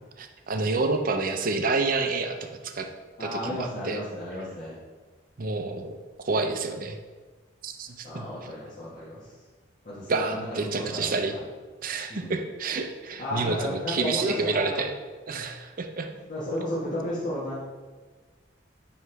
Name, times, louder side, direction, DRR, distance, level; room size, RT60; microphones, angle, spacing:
voice 1, 0.2-2.4 2.6-2.9 3.2-4.0 5.4-6.0 6.2-7.0 7.6-8.3 10.1-11.4 11.8-14.9 15.3-16.1, right 3 dB, 50° right, 6 dB, 0.5 m, -28 dB
voice 2, 3.2-4.8 8.0-9.3 9.8-11.4 12.1-12.4 13.2-14.8 16.3-17.6, left 1 dB, 50° left, -9 dB, 1.4 m, -33 dB
9.2 x 3.1 x 3.3 m, 1.3 s
head